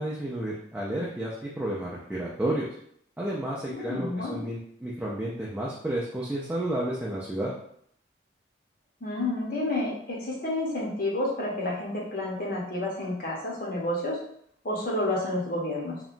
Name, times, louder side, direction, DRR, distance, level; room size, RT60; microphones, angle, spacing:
voice 1, 0.0-2.7 3.2-7.5, right 1 dB, 10° right, -6 dB, 0.3 m, -31 dB
voice 2, 3.7-4.4 9.0-14.2 14.6-16.0, left 1 dB, 50° left, -4 dB, 0.7 m, -30 dB
2.8 x 2.2 x 2.5 m, 0.67 s
head